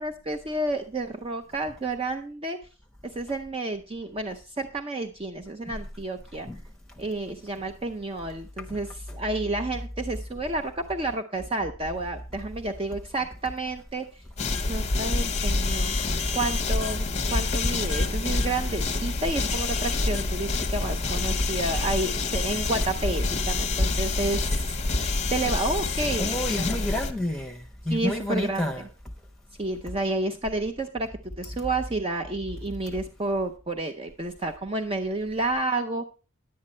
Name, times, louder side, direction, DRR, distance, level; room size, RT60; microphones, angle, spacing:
voice 1, 0.0-2.6 3.1-6.5 7.0-14.2 14.7-15.9 16.3-24.8 25.3-26.8 27.9-28.9 29.6-31.1 31.4-36.0, right 2 dB, 25° right, 0.5 m, -30 dB
sound 1, 14.4-27.1, left 3 dB, 30° left, 0.8 m, -27 dB
voice 2, 26.2-28.8, left 1 dB, 5° left, 1.1 m, -29 dB
10.5 x 8.7 x 4.3 m
head